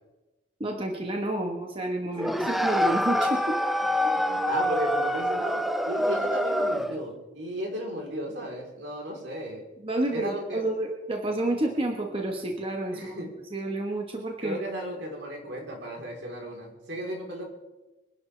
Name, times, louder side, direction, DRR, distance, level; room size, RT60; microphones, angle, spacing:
voice 1, 0.6-3.6 9.8-13.2 13.5-14.6, right 1 dB, 30° right, 2 dB, 1.3 m, -29 dB
sound 1, 2.2-7.0, equal, ahead, 0.5 m, -26 dB
voice 2, 2.2-2.7 4.0-9.6 10.1-10.7 12.9-13.3 14.4-17.4, equal, 75° right, 0 dB, 3.8 m, -35 dB
24.0 x 11.0 x 3.4 m, 1.1 s
head